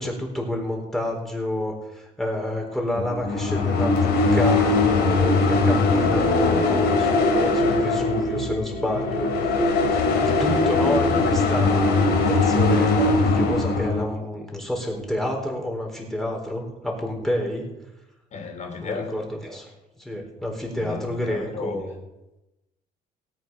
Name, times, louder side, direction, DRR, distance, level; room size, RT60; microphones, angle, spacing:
voice 1, 0.0-9.7 9.9-17.7 18.8-19.7 20.0-21.9, left 1 dB, ahead, 0 dB, 4.0 m, -29 dB
sound 1, 3.0-14.0, left 3 dB, 80° left, 2.8 m, -21 dB
voice 2, 18.3-19.1 20.8-21.8, left 5 dB, 45° left, 2 dB, 3.5 m, -33 dB
17.5 x 8.9 x 5.4 m, 0.97 s
cardioid pair, 110°, 17 cm